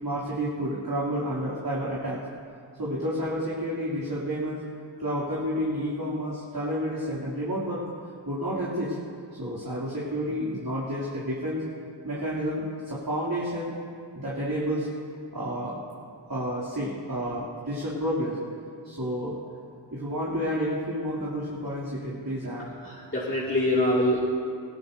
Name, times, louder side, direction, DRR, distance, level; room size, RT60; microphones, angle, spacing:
voice 1, 0.0-2.2 2.8-4.6 5.0-7.8 8.2-9.0 9.4-11.6 12.0-13.7 14.1-14.9 15.3-15.8 16.3-18.4 18.8-19.3 19.9-22.7, equal, 50° right, -7 dB, 2.9 m, -30 dB
voice 2, 22.8-24.2, left 1 dB, 25° left, -8 dB, 2.5 m, -24 dB
20.0 x 16.5 x 2.7 m, 2.2 s
wide cardioid pair, 45°, 45 cm